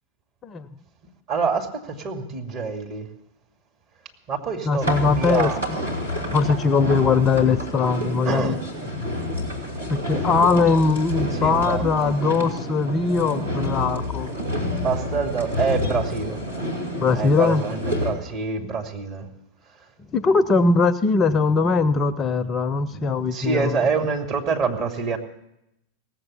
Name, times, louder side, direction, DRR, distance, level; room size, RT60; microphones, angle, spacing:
voice 1, 1.3-3.1 4.3-5.6 6.2-6.3 8.2-8.6 8.8-9.0 11.4-11.8 14.8-16.4 17.1-19.3 22.9-25.2, right 5 dB, 35° right, 1 dB, 2.3 m, -26 dB
voice 2, 4.7-5.5 6.3-8.6 9.9-14.3 17.0-17.7 20.1-23.8, left 4 dB, 25° left, 15 dB, 0.6 m, -20 dB
sound 1, 4.8-18.1, left 1 dB, 85° right, 2.7 m, -28 dB
17.5 x 7.8 x 8.4 m, 0.83 s
figure-of-eight pair, 90°, 0 cm